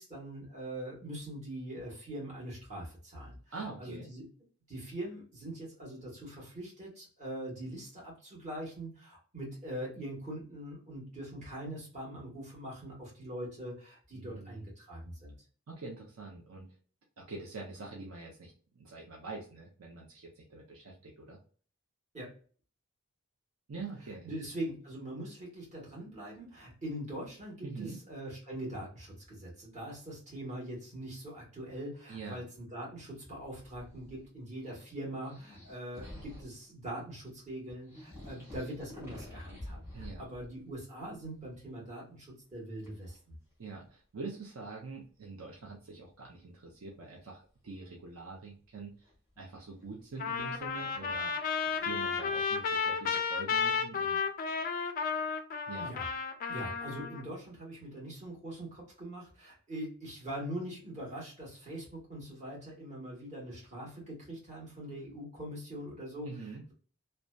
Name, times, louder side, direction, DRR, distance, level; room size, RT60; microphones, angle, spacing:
voice 1, 0.0-3.5 3.8-4.2 4.7-15.3 22.1-22.3 24.2-43.3 55.8-56.1 56.5-66.3, right 1 dB, 30° right, -5 dB, 1.2 m, -42 dB
voice 2, 3.5-4.1 14.1-14.7 15.7-16.7 17.2-21.4 23.7-24.3 27.6-28.0 32.1-32.4 39.9-40.2 43.6-49.1 49.4-51.3 51.7-54.2 55.7-55.9 66.2-66.6, right 3 dB, 70° right, -1 dB, 0.6 m, -45 dB
sound 1, 33.4-34.3 34.6-36.6 37.4-37.5 37.7-40.7 41.0-41.6 42.8-43.2 43.9-44.0 45.9-46.0 49.0-52.2, left 1 dB, 10° right, 1.0 m, -50 dB
Trumpet, 50.2-57.2, left 5 dB, 40° left, 0.3 m, -33 dB
2.7 x 2.1 x 2.2 m, 0.42 s
head